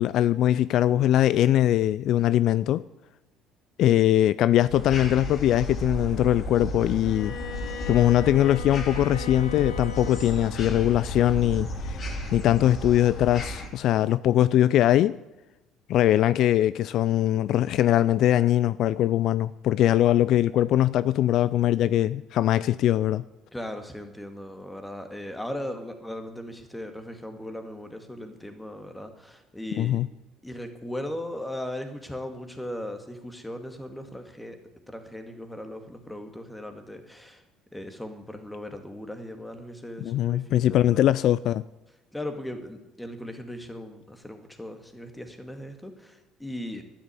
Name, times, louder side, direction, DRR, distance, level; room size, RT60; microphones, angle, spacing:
voice 1, 0.0-2.8 3.8-7.4 7.9-12.0 12.3-15.2 15.9-23.2 29.8-30.1 40.0-41.6, left 12 dB, 60° left, 0.4 m, -21 dB
sound 1, 4.7-13.7, equal, 40° left, 3.2 m, -33 dB
Bowed string instrument, 7.0-10.7, left 5 dB, 85° left, 2.4 m, -39 dB
voice 2, 23.5-30.0 30.4-34.6 34.9-37.4 37.7-41.1 42.1-46.8, left 1 dB, 5° left, 2.1 m, -38 dB
12.0 x 10.0 x 9.7 m
cardioid pair, 120°, 0 cm